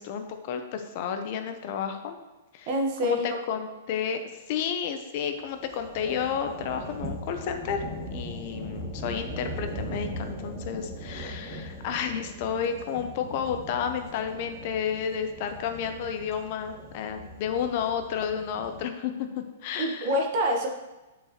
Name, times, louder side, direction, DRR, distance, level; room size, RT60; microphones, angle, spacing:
voice 1, 0.0-2.2 2.5-2.7 3.0-4.2 4.5-7.8 8.1-19.1 19.6-20.1, left 7 dB, 45° left, 7 dB, 0.7 m, -31 dB
voice 2, 2.7-3.3 19.8-20.7, equal, 45° right, 2 dB, 1.3 m, -26 dB
sound 1, 5.3-18.8, equal, 30° right, 2.1 m, -40 dB
8.8 x 5.0 x 3.0 m, 1.1 s
hypercardioid pair, 150°, 0 cm